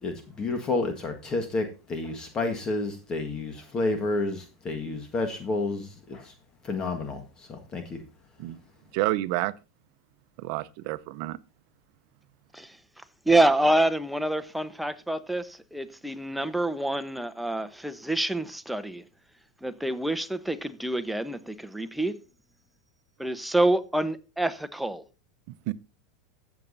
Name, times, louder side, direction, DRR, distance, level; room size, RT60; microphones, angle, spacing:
voice 1, 0.0-6.3 6.6-8.0, left 3 dB, 30° left, 1.6 m, -30 dB
voice 2, 8.9-9.5 10.4-11.4 25.5-25.7, right 18 dB, 60° right, 0.7 m, -29 dB
voice 3, 12.5-19.0 19.6-22.1 23.2-25.0, right 1 dB, ahead, 0.9 m, -27 dB
15.0 x 7.1 x 2.7 m
hypercardioid pair, 100°, 2 cm